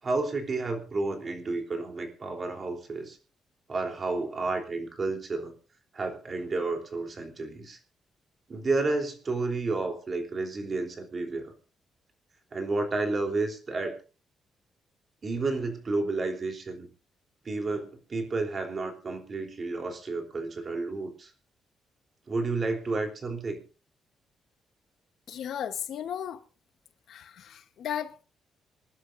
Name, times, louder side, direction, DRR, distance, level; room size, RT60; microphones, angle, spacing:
voice 1, 0.0-3.2 3.7-5.5 5.9-7.8 8.5-11.5 12.5-13.9 15.2-16.9 17.4-21.3 22.3-23.6, right 3 dB, 35° right, 3.5 m, -31 dB
voice 2, 25.3-26.4 27.1-28.2, left 9 dB, 70° left, 1.1 m, -35 dB
27.0 x 11.0 x 2.6 m
cardioid pair, 135°, 0 cm